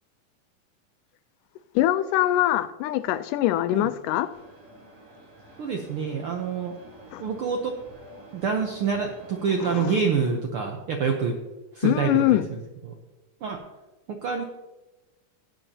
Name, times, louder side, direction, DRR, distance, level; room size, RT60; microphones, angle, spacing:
voice 1, 1.8-4.3 7.1-7.2 9.7-10.0 11.8-12.5, left 14 dB, 90° left, 2.2 m, -23 dB
sound 1, 4.3-9.8, right 1 dB, 55° right, 5.6 m, -49 dB
voice 2, 5.6-6.8 7.2-7.7 8.3-11.4 11.7-12.9 13.4-13.6 14.1-14.4, right 6 dB, 75° right, 1.2 m, -27 dB
16.5 x 9.0 x 2.8 m
omnidirectional pair, 3.6 m